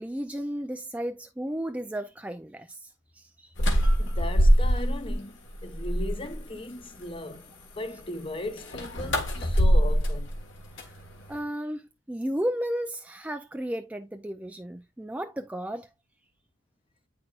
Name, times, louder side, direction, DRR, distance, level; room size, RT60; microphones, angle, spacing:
voice 1, 0.0-3.5 10.8-11.0 11.3-15.9, equal, 5° right, 0.4 m, -34 dB
sound 1, 3.6-5.1 5.5-6.4 8.6-11.4, equal, 60° left, 1.6 m, -24 dB
voice 2, 4.0-7.5 7.8-10.3, left 2 dB, 25° left, 0.8 m, -37 dB
8.8 x 5.9 x 2.4 m
head